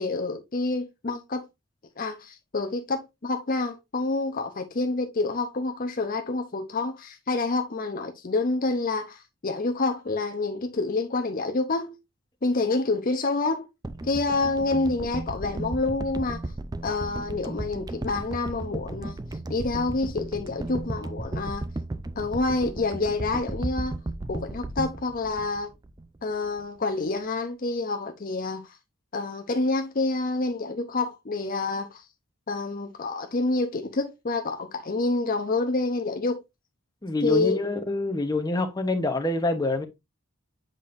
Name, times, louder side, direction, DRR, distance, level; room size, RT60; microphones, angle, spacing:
voice 1, 0.0-1.4 2.0-12.0 12.4-13.7 14.0-16.5 16.8-19.1 19.5-21.6 22.2-24.0 24.3-25.7 26.2-28.8 29.1-32.0 32.5-36.4 37.2-37.7, left 3 dB, 40° left, 0.6 m, -28 dB
sound 1, 13.8-26.2 26.5-26.6, right 2 dB, 20° right, 0.4 m, -35 dB
voice 2, 37.0-39.9, left 2 dB, 20° left, 0.9 m, -26 dB
7.5 x 5.2 x 2.5 m
head